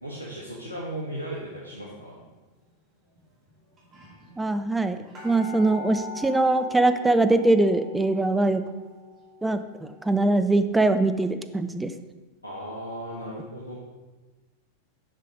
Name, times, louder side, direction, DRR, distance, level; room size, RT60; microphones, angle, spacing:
voice 1, 0.0-2.1 12.4-13.8, right 1 dB, 85° left, -5 dB, 1.2 m, -36 dB
sound 1, 2.0-2.3 3.2-3.3 3.5-3.6 3.8-11.4 11.8-11.9, left 1 dB, 30° right, 2.5 m, -43 dB
voice 2, 4.4-5.0 5.2-8.6 9.4-11.9, right 2 dB, 10° right, 9 dB, 0.5 m, -22 dB
7.0 x 5.7 x 5.1 m, 1.2 s
figure-of-eight pair, 90°, 0 cm